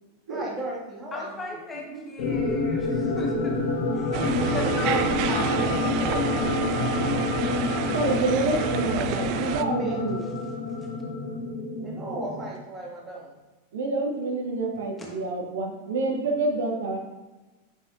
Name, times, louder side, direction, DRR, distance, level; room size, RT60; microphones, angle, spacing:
voice 1, 0.3-1.6 5.3-7.5 9.6-10.0 11.8-13.3, right 1 dB, 20° right, -3 dB, 1.9 m, -36 dB
voice 2, 1.1-5.5 7.0-7.1 9.4-9.5, left 3 dB, 15° left, -1 dB, 1.3 m, -36 dB
voice 3, 1.9-2.3 7.9-10.2 13.7-17.0, right 2 dB, 60° right, 2 dB, 0.9 m, -28 dB
sound 1, 2.2-12.5, left 3 dB, 50° left, 1.3 m, -28 dB
sound 2, 4.1-9.6, right 10 dB, 45° right, 0.4 m, -29 dB
8.1 x 5.6 x 2.7 m, 1.2 s
figure-of-eight pair, 90°, 0 cm